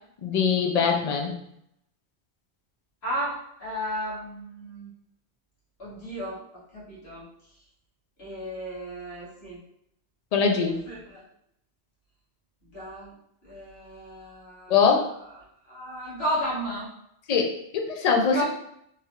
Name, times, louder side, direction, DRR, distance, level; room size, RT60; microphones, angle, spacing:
voice 1, 0.2-1.3 10.3-10.8 14.7-15.1 17.3-17.5 17.7-18.4, left 5 dB, 55° left, 2 dB, 0.4 m, -22 dB
voice 2, 3.0-4.9 5.8-7.3 8.2-9.6 10.9-11.2 12.6-13.1 13.4-14.8 15.6-16.9 18.3-18.4, equal, 70° left, -8 dB, 1.6 m, -33 dB
3.2 x 2.9 x 2.3 m, 0.73 s
omnidirectional pair, 1.1 m